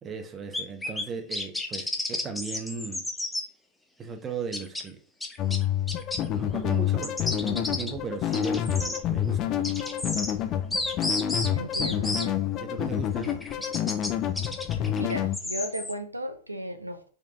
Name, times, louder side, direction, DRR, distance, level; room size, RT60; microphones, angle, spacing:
voice 1, 0.0-3.1 4.0-5.0 6.2-9.5 12.6-13.3 13.7-13.8, right 5 dB, 20° right, 1.1 m, -37 dB
sound 1, 0.5-1.0 1.3-3.4 4.5-4.9 5.2-6.2 7.0-7.9 8.3-9.0 9.6-10.3 10.7-12.2 13.2-14.1 14.4-15.9, left 2 dB, 5° left, 1.1 m, -32 dB
sound 2, 5.4-15.4, left 10 dB, 35° left, 0.7 m, -28 dB
voice 2, 11.5-12.5 13.3-13.4 14.8-17.1, equal, 85° right, 0.7 m, -35 dB
5.2 x 5.0 x 3.8 m
figure-of-eight pair, 90°, 0 cm